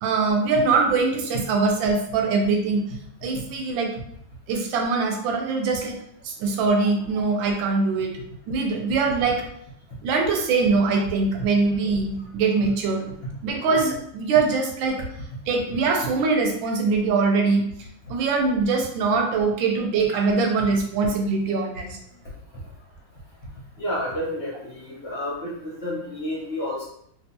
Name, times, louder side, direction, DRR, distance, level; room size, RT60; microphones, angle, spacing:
voice 1, 0.0-2.8 3.2-4.0 4.5-6.0 6.2-8.1 8.5-9.4 10.0-13.1 13.4-15.0 15.5-17.6 18.1-22.0, right 4 dB, 90° right, 2 dB, 1.4 m, -22 dB
voice 2, 23.8-26.8, left 1 dB, 45° left, -6 dB, 0.9 m, -30 dB
3.5 x 2.6 x 2.8 m, 0.71 s
omnidirectional pair, 2.0 m